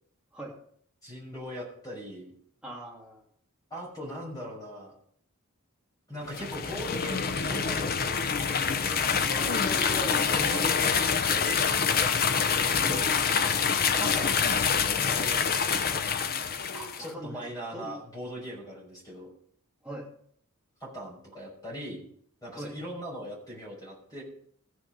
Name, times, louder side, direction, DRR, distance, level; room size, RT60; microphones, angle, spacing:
voice 1, 1.0-2.3 3.7-4.9 6.1-9.0 10.1-11.7 12.6-13.0 14.0-16.1 17.0-19.3 20.8-22.0 22.4-24.2, equal, 15° left, -3 dB, 6.0 m, -40 dB
voice 2, 2.6-3.2 9.3-10.2 10.5-10.7 12.5-13.4 16.7-17.4 17.7-17.9 19.8-20.1 22.6-22.7, right 1 dB, 5° right, -3 dB, 2.5 m, -40 dB
sound 1, 6.3-17.1, left 6 dB, 45° left, 0.7 m, -26 dB
15.0 x 6.5 x 5.3 m, 0.64 s
head